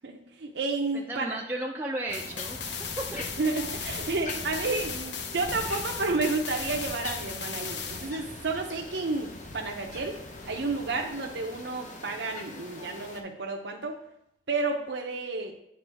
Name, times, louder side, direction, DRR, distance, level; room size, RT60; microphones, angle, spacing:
voice 1, 0.0-1.4 3.4-14.0 14.5-15.5, right 3 dB, 75° right, 2 dB, 0.7 m, -31 dB
voice 2, 0.9-3.3, right 1 dB, 15° right, -1 dB, 0.5 m, -35 dB
sound 1, 2.1-8.1, left 6 dB, 80° left, 0.7 m, -37 dB
sound 2, 2.1-13.2, left 2 dB, 45° left, 0.8 m, -42 dB
8.6 x 4.9 x 3.4 m, 0.78 s
head